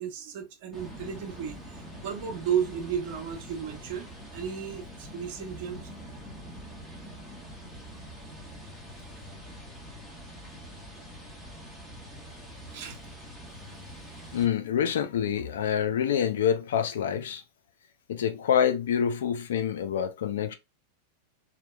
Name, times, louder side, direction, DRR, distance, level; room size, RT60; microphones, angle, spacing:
voice 1, 0.0-5.9 12.7-13.1, right 8 dB, 60° right, 0.8 m, -34 dB
sound 1, 0.7-14.5, equal, ahead, 0.9 m, -44 dB
voice 2, 14.3-17.4 18.1-20.5, left 8 dB, 80° left, 0.5 m, -26 dB
2.8 x 2.1 x 2.2 m
hypercardioid pair, 110°, 0 cm